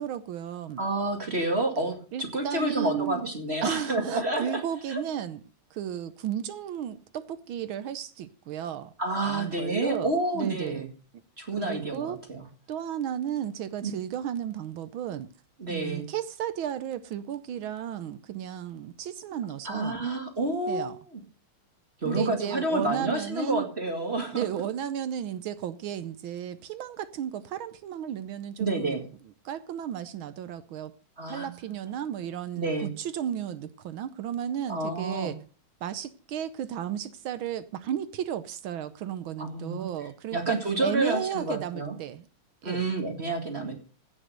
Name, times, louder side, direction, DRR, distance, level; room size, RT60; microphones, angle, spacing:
voice 1, 0.0-0.8 2.1-3.2 3.6-5.4 5.7-8.9 9.2-10.8 11.1-11.2 11.6-12.2 12.7-15.3 15.7-20.1 20.7-21.0 22.0-23.7 24.3-29.1 29.4-30.9 31.3-35.4 35.8-42.3 42.6-42.8, right 10 dB, 75° right, 1.6 m, -34 dB
voice 2, 0.8-4.6 4.9-5.0 9.0-10.9 11.4-12.4 13.8-13.9 15.6-16.0 19.6-21.2 22.0-24.5 28.6-29.0 31.2-31.5 32.6-32.9 34.7-35.3 39.4-39.9 40.3-42.0 42.6-43.7, right 2 dB, 30° right, 2.3 m, -29 dB
16.0 x 6.5 x 6.5 m
omnidirectional pair, 2.3 m